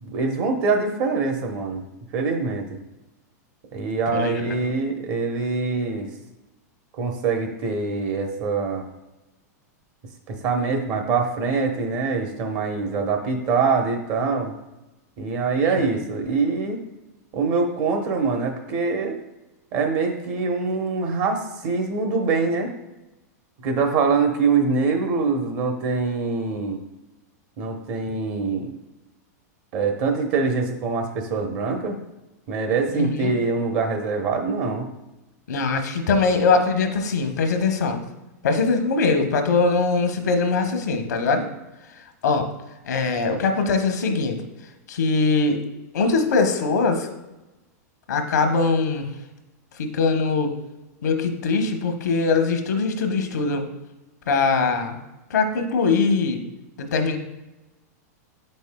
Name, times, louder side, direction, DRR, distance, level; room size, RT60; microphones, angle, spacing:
voice 1, 0.0-1.8 2.1-2.8 3.7-6.1 7.0-8.8 10.3-14.5 15.2-16.8 17.3-19.2 19.7-22.7 23.6-26.8 27.6-28.7 29.7-32.0 32.5-34.9, right 4 dB, 45° right, 4 dB, 0.9 m, -24 dB
voice 2, 4.1-4.7 15.6-15.8 32.9-33.3 35.5-38.0 38.4-41.5 42.2-42.5 42.8-44.4 44.9-45.6 45.9-47.1 48.1-49.1 49.8-50.5 51.0-53.7 54.3-55.0 55.3-56.4 56.8-57.2, left 4 dB, 85° left, 5 dB, 0.9 m, -22 dB
7.9 x 5.4 x 2.2 m, 1.0 s
hypercardioid pair, 135°, 9 cm